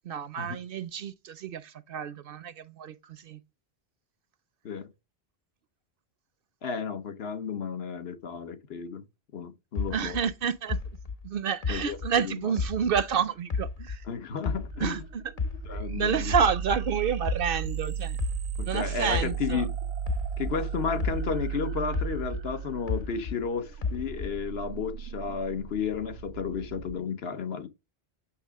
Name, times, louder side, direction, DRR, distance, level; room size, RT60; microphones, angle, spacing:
voice 1, 0.1-3.4 9.9-10.8 11.2-14.0 14.8-15.2 16.0-18.2 18.6-19.6, right 7 dB, 60° right, 0.7 m, -29 dB
voice 2, 6.6-9.0 9.3-10.2 11.7-12.6 14.0-15.0 15.6-16.3 18.6-19.8 20.4-27.7, left 6 dB, 70° left, 1.1 m, -33 dB
sound 1, 9.8-13.2 13.5-16.0 16.3-20.7 21.0-23.5 23.8-24.5, left 4 dB, 45° left, 0.6 m, -33 dB
sound 2, 14.7-27.0, right 8 dB, 80° right, 1.0 m, -35 dB
8.4 x 5.9 x 3.5 m
omnidirectional pair, 1.1 m